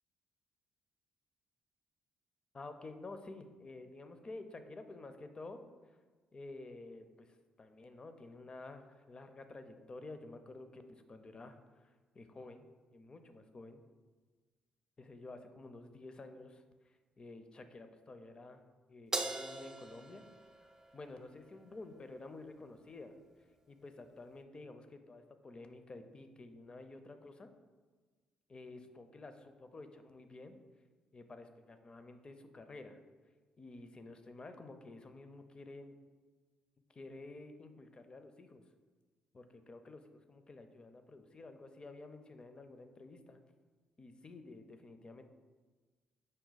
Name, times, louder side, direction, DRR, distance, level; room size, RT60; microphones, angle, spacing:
voice 1, 2.5-5.6 6.3-13.8 15.0-18.6 18.9-20.3 20.6-23.1 23.7-27.5 28.5-30.6 31.1-33.0 33.6-36.0 36.9-38.6 39.3-43.4 44.0-45.2, left 2 dB, 35° left, 8 dB, 0.4 m, -51 dB
Crash cymbal, 19.1-21.7, right 2 dB, 20° right, 0.5 m, -41 dB
5.1 x 2.2 x 3.9 m, 1.4 s
supercardioid pair, 60°, 3 cm